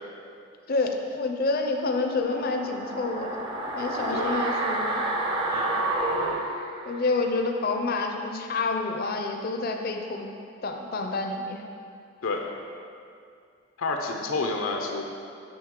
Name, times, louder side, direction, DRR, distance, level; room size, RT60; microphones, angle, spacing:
voice 1, 0.7-3.4 3.8-5.0 6.9-10.3 10.6-11.6, left 3 dB, 45° left, 3 dB, 0.5 m, -28 dB
sound 1, 2.2-7.3 7.6-7.7, right 2 dB, 25° right, 0.6 m, -29 dB
voice 2, 13.8-15.0, left 3 dB, 90° left, 2 dB, 0.6 m, -29 dB
7.7 x 6.0 x 3.7 m, 2.4 s
head